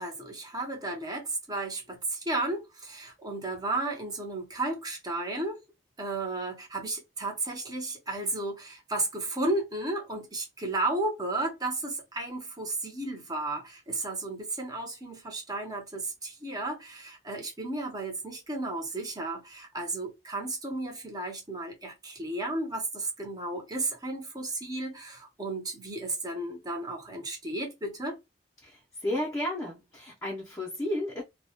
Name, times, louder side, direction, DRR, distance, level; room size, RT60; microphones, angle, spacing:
voice 1, 0.0-5.6 6.0-28.2, right 2 dB, 20° right, 0.6 m, -33 dB
voice 2, 28.6-31.2, left 1 dB, 15° left, 0.5 m, -33 dB
2.2 x 2.0 x 2.8 m
head